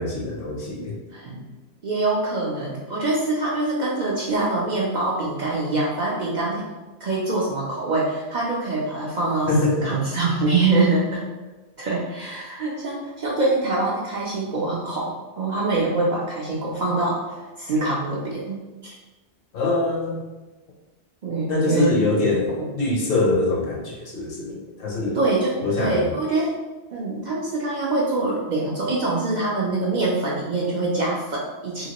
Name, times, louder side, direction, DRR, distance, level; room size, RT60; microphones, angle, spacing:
voice 1, 0.0-1.0 9.5-10.0 19.5-20.2 21.5-25.2 25.6-26.1, left 2 dB, 60° left, -2 dB, 0.8 m, -23 dB
voice 2, 1.1-1.5 1.8-6.6 7.0-11.2 11.8-19.0 21.2-21.9 22.6-22.7 25.1-26.5 26.9-31.9, right 2 dB, 55° right, -4 dB, 0.5 m, -24 dB
2.8 x 2.8 x 2.9 m, 1.2 s
omnidirectional pair, 1.1 m